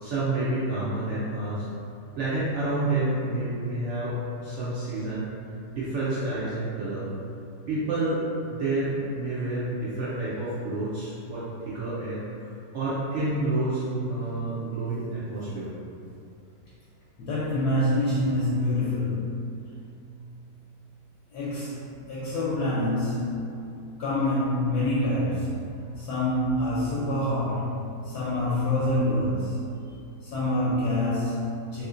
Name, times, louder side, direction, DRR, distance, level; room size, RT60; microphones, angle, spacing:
voice 1, 0.0-1.7 2.2-5.3 5.7-7.1 7.7-12.2 12.7-15.7, right 2 dB, 65° right, -9 dB, 0.7 m, -29 dB
voice 2, 17.2-19.4 21.3-23.7 24.0-25.6 26.0-29.6 29.8-29.9 30.2-31.9, left 1 dB, 75° left, -8 dB, 1.2 m, -26 dB
3.5 x 2.8 x 2.5 m, 2.5 s
omnidirectional pair, 1.8 m